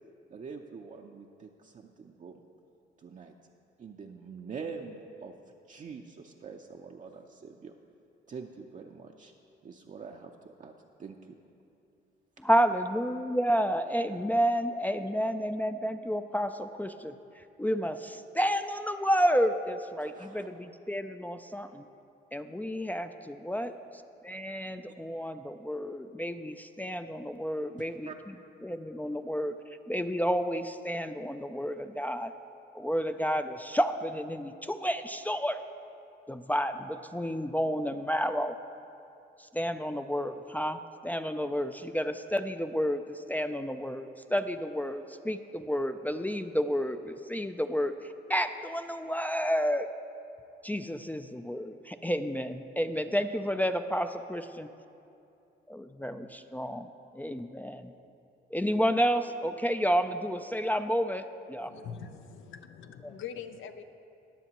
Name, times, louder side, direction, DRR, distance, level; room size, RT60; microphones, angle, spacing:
voice 1, 0.3-2.4 3.0-3.3 3.8-5.3 5.7-7.8 8.3-9.3 9.6-10.7 11.0-11.3 20.0-20.5 23.6-23.7 28.0-28.2, right 5 dB, 40° right, 1 dB, 0.6 m, -45 dB
voice 2, 12.4-21.8 22.3-23.7 24.2-28.1 28.6-29.5 29.9-32.3 32.7-35.6 36.3-38.6 39.4-49.9 50.6-54.7 55.7-56.9 57.1-57.9 58.5-61.3 61.5-61.7 63.0-63.1, equal, 10° left, 9 dB, 0.3 m, -30 dB
voice 3, 61.6-63.8, left 7 dB, 75° left, 9 dB, 0.6 m, -43 dB
20.5 x 7.0 x 3.0 m, 2.7 s
cardioid pair, 90°, 20 cm